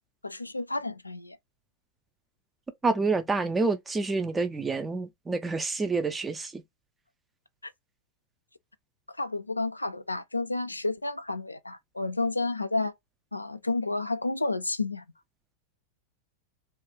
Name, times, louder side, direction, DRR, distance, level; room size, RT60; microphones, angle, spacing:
voice 1, 0.2-1.4 7.6-7.7 9.2-12.9 13.3-15.0, left 2 dB, 85° left, 0.4 m, -31 dB
voice 2, 2.8-6.6, right 3 dB, 15° right, 0.6 m, -28 dB
2.8 x 2.3 x 3.5 m
figure-of-eight pair, 90°, 0 cm